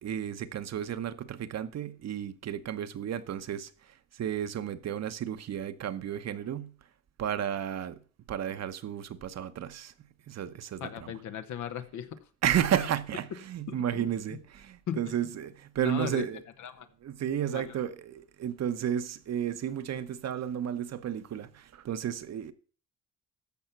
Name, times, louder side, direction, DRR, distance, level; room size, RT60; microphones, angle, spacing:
voice 1, 0.0-3.7 4.1-6.7 7.2-8.0 8.3-9.9 10.3-10.9 12.4-16.4 17.0-22.5, right 9 dB, 60° right, 1.0 m, -32 dB
voice 2, 10.8-12.2 13.7-14.4 14.9-15.1 15.8-16.9 17.5-17.8, left 9 dB, 75° left, 1.2 m, -38 dB
14.0 x 5.6 x 5.9 m
cardioid pair, 90°, 30 cm